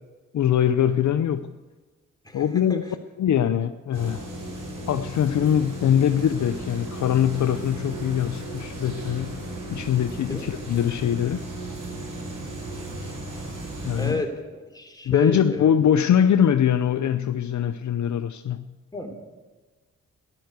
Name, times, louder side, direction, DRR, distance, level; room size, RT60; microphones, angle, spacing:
voice 1, 0.3-1.5 2.3-2.8 3.2-4.3 4.9-9.4 9.7-11.4 13.8-14.2 15.1-18.7, left 9 dB, 65° left, 0.6 m, -22 dB
voice 2, 2.2-3.0 10.2-10.5 13.9-14.4 14.6-15.7 18.9-19.1, left 1 dB, 10° left, 3.4 m, -31 dB
sound 1, 3.9-14.1, right 1 dB, 70° right, 5.3 m, -35 dB
13.0 x 12.0 x 8.0 m
supercardioid pair, 45°, 32 cm